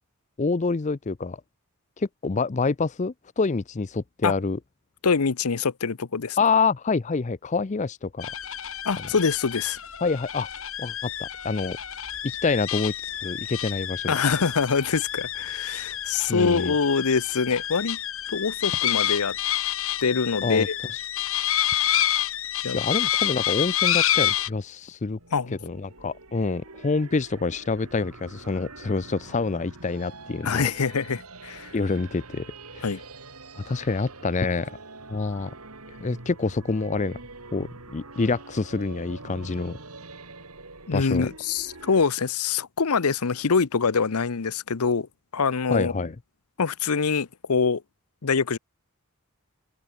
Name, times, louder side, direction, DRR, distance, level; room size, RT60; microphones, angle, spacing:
voice 1, 0.4-1.4 2.0-4.6 6.4-8.3 10.0-10.5 10.8-11.8 12.2-12.9 13.2-14.1 16.3-16.7 20.4-20.7 20.9-21.0 22.6-25.2 25.6-30.7 31.7-32.5 32.7-32.9 33.6-34.8 35.1-35.5 36.0-37.2 37.5-39.8 40.9-41.3 45.7-46.2, left 4 dB, 30° left, 0.5 m, -27 dB
voice 2, 5.0-6.4 8.8-9.8 14.1-18.0 18.3-19.4 20.0-20.8 22.6-22.8 25.3-25.6 30.4-31.7 32.8-33.0 40.9-45.1 45.3-45.9 46.6-47.8 48.2-48.6, left 5 dB, 85° left, 0.8 m, -24 dB
sound 1, 8.2-24.5, left 11 dB, 65° left, 3.1 m, -28 dB
sound 2, 25.2-42.1, right 3 dB, 90° right, 5.6 m, -45 dB
open air
head